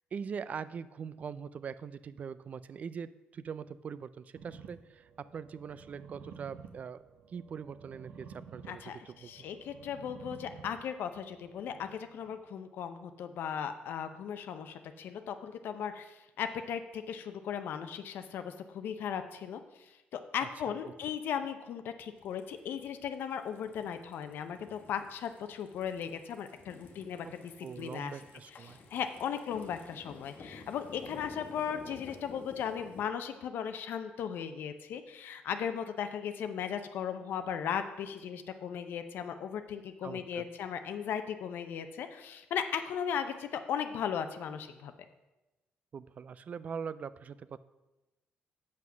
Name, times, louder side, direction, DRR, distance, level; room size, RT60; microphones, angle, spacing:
voice 1, 0.1-7.0 7.3-9.5 20.7-20.9 27.6-28.8 40.0-40.5 45.9-47.6, right 6 dB, 45° right, 16 dB, 0.4 m, -42 dB
sound 1, 4.4-12.3, right 6 dB, 80° right, 1.1 m, -52 dB
voice 2, 8.7-27.4 27.8-28.1 28.6-44.9, left 8 dB, 75° left, 8 dB, 0.6 m, -37 dB
sound 2, 22.2-33.0, left 4 dB, 55° left, 1.2 m, -52 dB
7.5 x 5.8 x 6.2 m, 1.0 s
cardioid pair, 120°, 4 cm